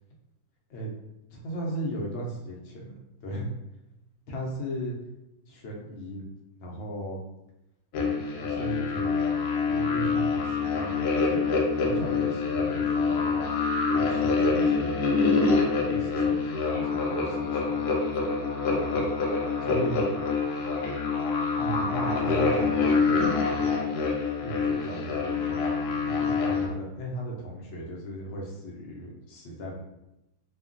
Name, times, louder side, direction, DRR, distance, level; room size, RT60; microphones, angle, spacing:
voice 1, 1.3-2.9 3.2-3.5 4.3-5.0 5.5-6.2 6.6-7.2 7.9-9.1 9.7-13.5 13.9-15.0 15.7-17.8 18.9-19.1 19.6-20.0 21.5-24.0 24.4-29.8, right 1 dB, 60° left, -2 dB, 0.7 m, -36 dB
sound 1, 7.9-26.7, left 4 dB, 85° left, 1.1 m, -26 dB
3.1 x 2.1 x 2.4 m, 0.90 s
omnidirectional pair, 1.6 m